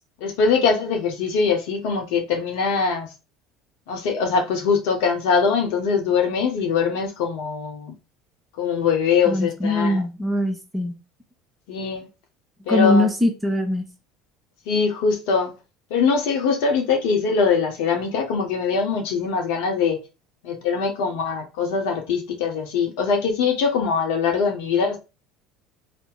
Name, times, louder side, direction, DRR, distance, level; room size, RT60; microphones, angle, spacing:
voice 1, 0.2-3.1 3.9-7.9 8.6-10.0 11.7-12.1 12.7-13.1 14.7-15.5 15.9-20.0 20.4-25.0, left 5 dB, 65° left, 0.9 m, -22 dB
voice 2, 9.2-11.0 12.7-13.8, left 2 dB, 15° right, 1.0 m, -22 dB
2.8 x 2.1 x 3.9 m
hypercardioid pair, 70°, 0 cm